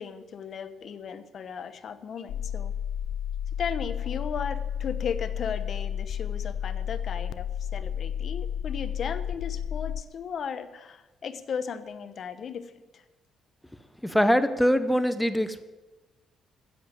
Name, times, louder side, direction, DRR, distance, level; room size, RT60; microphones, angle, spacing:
voice 1, 0.0-2.7 3.6-13.0, left 7 dB, 55° left, 11 dB, 0.9 m, -36 dB
sound 1, 2.3-10.0, left 9 dB, 80° left, 0.4 m, -32 dB
voice 2, 14.0-15.6, equal, 5° left, 11 dB, 0.7 m, -23 dB
10.0 x 7.8 x 7.6 m, 1.1 s
cardioid pair, 90°, 0 cm